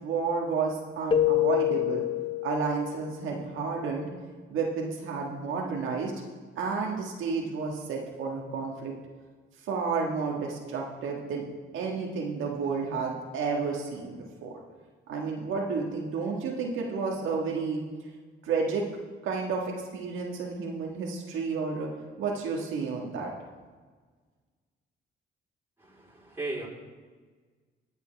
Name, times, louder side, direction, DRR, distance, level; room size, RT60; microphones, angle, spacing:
voice 1, 0.0-2.1 2.4-4.1 4.5-6.1 6.5-8.9 9.7-11.5 11.7-14.5 15.1-17.8 18.4-18.8 19.2-21.9 22.2-23.3, right 4 dB, 85° right, -1 dB, 1.6 m, -31 dB
Keyboard (musical), 1.1-3.1, left 11 dB, 25° left, 0.5 m, -26 dB
voice 2, 25.8-26.7, right 2 dB, 10° right, -4 dB, 3.8 m, -36 dB
20.0 x 6.9 x 3.4 m, 1.5 s
cardioid pair, 90°, 20 cm